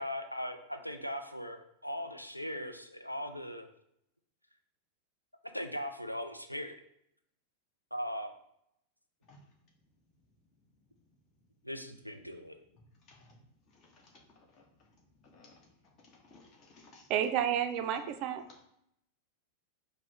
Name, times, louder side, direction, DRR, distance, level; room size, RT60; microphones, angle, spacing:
voice 1, 0.0-3.7 5.5-6.8 7.9-8.3 11.6-12.6, equal, 90° left, 0.4 m, -39 dB
voice 2, 13.0-13.4 13.7-17.1, left 2 dB, 35° left, 1.1 m, -60 dB
voice 3, 17.1-18.4, right 9 dB, 40° right, 0.4 m, -30 dB
4.8 x 2.1 x 3.5 m
figure-of-eight pair, 90°, 0 cm